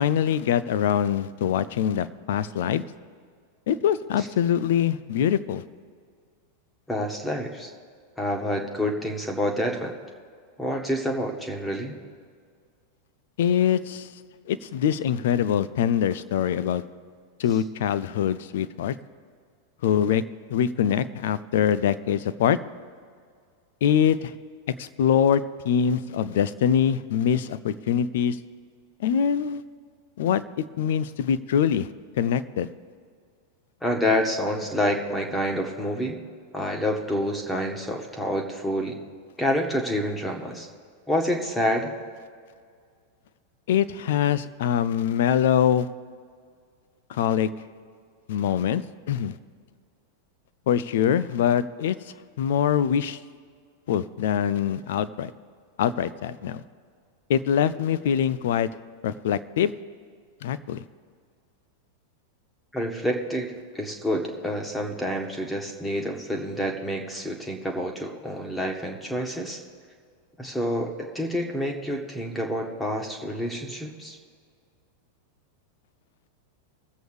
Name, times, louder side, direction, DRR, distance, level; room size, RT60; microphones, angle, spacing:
voice 1, 0.0-2.8 3.7-5.6 13.4-14.1 14.5-16.8 17.4-18.9 19.8-20.2 20.5-22.6 23.8-24.3 24.8-28.4 29.0-29.6 30.2-30.4 30.8-31.9 32.2-32.7 43.7-45.9 47.1-47.5 48.3-48.8 49.1-49.4 50.7-52.0 52.4-53.2 53.9-55.3 55.8-56.6 57.3-58.7 59.0-59.7 60.4-60.8, left 9 dB, 55° left, 17 dB, 0.5 m, -23 dB
voice 2, 6.9-7.7 8.2-9.9 10.6-12.0 33.8-36.2 36.5-39.0 39.4-40.7 41.1-41.9 62.7-69.6 70.4-74.2, equal, 5° left, 1 dB, 1.5 m, -28 dB
21.0 x 7.7 x 3.3 m, 2.1 s
figure-of-eight pair, 90°, 0 cm